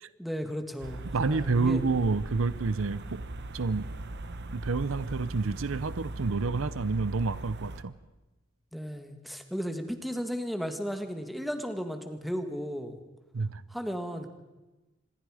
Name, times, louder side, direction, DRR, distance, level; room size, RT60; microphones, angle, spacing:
voice 1, 0.2-1.0 1.3-1.8 8.7-13.0 13.7-14.3, equal, ahead, 6 dB, 1.6 m, -34 dB
sound 1, 0.8-7.8, right 2 dB, 55° right, 1.1 m, -39 dB
voice 2, 1.1-3.2 3.5-3.9 4.5-7.9 13.3-13.6, right 4 dB, 80° right, 16 dB, 0.7 m, -29 dB
26.0 x 21.0 x 5.0 m, 1.1 s
head